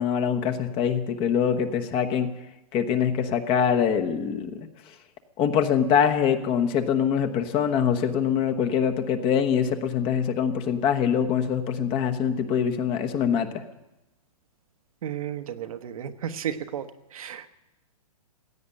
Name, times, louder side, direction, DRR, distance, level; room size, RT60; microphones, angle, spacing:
voice 1, 0.0-2.3 2.7-4.5 5.4-13.5, left 7 dB, 30° left, 7 dB, 1.1 m, -24 dB
voice 2, 15.0-16.9 17.1-17.5, right 9 dB, 65° right, 9 dB, 1.2 m, -33 dB
16.5 x 8.7 x 9.8 m, 0.96 s
hypercardioid pair, 135°, 19 cm